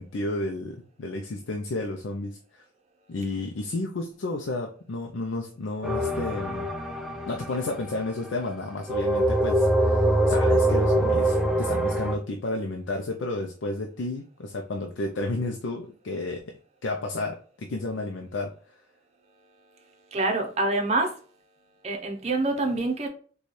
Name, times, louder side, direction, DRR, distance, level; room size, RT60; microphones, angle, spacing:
voice 1, 0.0-2.4 3.1-6.7 7.3-18.5, left 2 dB, 80° left, 0.5 m, -32 dB
sound 1, 5.8-8.3 8.9-12.2, right 1 dB, ahead, 0.4 m, -24 dB
voice 2, 20.1-21.1 21.8-23.1, right 2 dB, 35° right, 0.7 m, -26 dB
4.1 x 2.3 x 3.1 m
head